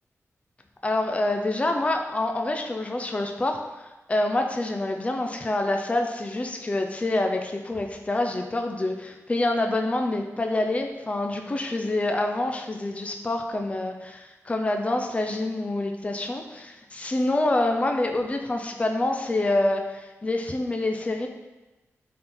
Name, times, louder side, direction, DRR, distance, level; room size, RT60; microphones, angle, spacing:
voice 1, 0.8-3.6 4.1-21.3, left 2 dB, 25° left, 4 dB, 0.7 m, -26 dB
13.0 x 4.4 x 3.8 m, 1.1 s
wide cardioid pair, 125°, 5 cm